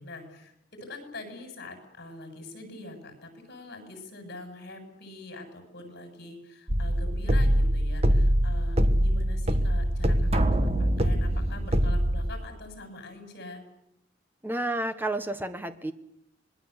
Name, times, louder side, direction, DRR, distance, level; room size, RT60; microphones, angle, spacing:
voice 1, 0.0-13.6, left 2 dB, 55° left, 6 dB, 7.6 m, -44 dB
sound 1, 6.7-12.3, equal, 35° right, 1.6 m, -24 dB
voice 2, 14.4-15.9, right 1 dB, 10° right, 10 dB, 1.4 m, -30 dB
26.0 x 21.0 x 8.3 m, 0.79 s
head